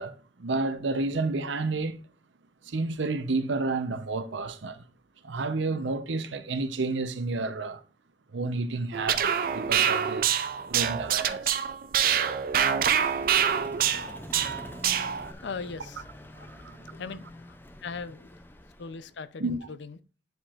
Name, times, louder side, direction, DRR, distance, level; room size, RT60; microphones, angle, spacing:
voice 1, 0.0-2.0 2.7-4.8 5.2-7.8 8.3-11.6 16.3-16.8 19.4-19.6, right 3 dB, 80° right, 0.7 m, -31 dB
sound 1, 8.9-15.3, right 8 dB, 50° right, 0.4 m, -26 dB
Vehicle, 12.7-19.2, left 1 dB, 10° left, 0.4 m, -46 dB
voice 2, 15.4-16.0 16.9-17.5 17.8-18.3 18.8-20.0, left 5 dB, 70° left, 0.5 m, -38 dB
9.4 x 4.4 x 2.4 m
head